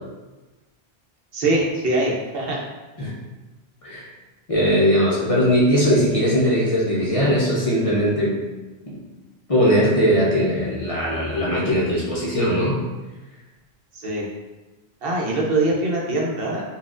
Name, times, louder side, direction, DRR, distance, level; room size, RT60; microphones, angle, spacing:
voice 1, 1.3-2.6 13.9-14.2 15.0-16.6, right 2 dB, 65° right, -3 dB, 0.8 m, -22 dB
voice 2, 4.5-8.4 9.5-12.8, equal, 40° left, -7 dB, 0.6 m, -19 dB
4.2 x 2.4 x 2.4 m, 1.2 s
omnidirectional pair, 1.1 m